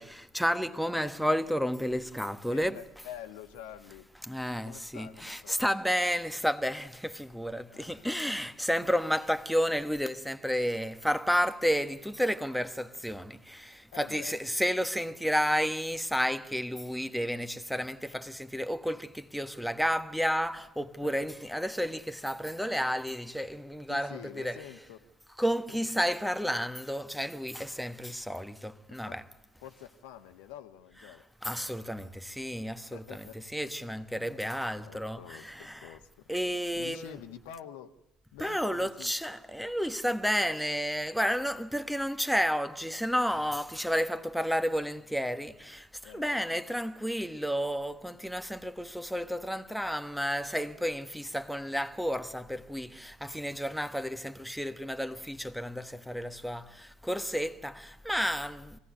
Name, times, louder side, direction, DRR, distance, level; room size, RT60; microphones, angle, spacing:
voice 1, 0.0-3.1 4.1-24.7 25.4-29.2 31.0-31.2 31.4-36.0 36.3-37.2 38.4-58.8, equal, ahead, 1.3 m, -31 dB
voice 2, 2.5-4.1 4.6-5.6 7.7-8.3 13.9-14.4 21.0-21.1 23.9-25.1 25.8-25.9 27.6-27.7 29.0-29.2 29.6-31.3 32.0-32.1 32.9-36.3 36.8-38.0 38.3-39.1 46.0-46.4, left 11 dB, 70° left, 1.4 m, -48 dB
25.5 x 17.5 x 9.4 m
hypercardioid pair, 65°, 0 cm